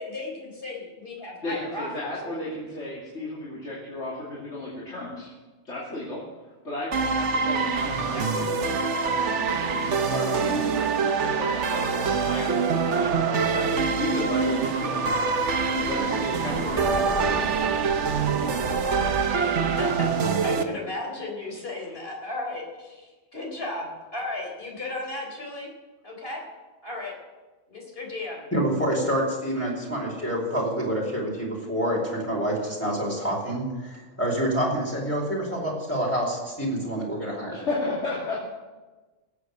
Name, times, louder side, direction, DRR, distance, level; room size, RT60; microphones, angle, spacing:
voice 1, 0.0-1.9 2.3-2.4 8.1-8.2 19.3-19.5 19.8-25.7 26.0-26.4 26.8-27.1 27.7-28.4, left 2 dB, 55° left, -1 dB, 4.1 m, -35 dB
voice 2, 1.4-5.3 5.6-6.2 6.6-17.1 37.5-38.4, left 2 dB, 85° left, -7 dB, 3.1 m, -34 dB
sound 1, 6.9-20.6, right 5 dB, 85° right, 1.3 m, -25 dB
Thunder, 14.3-19.2, right 1 dB, 40° right, 2.0 m, -36 dB
voice 3, 28.5-37.6, right 1 dB, 10° left, -3 dB, 4.3 m, -27 dB
19.0 x 8.5 x 6.5 m, 1.2 s
omnidirectional pair, 1.2 m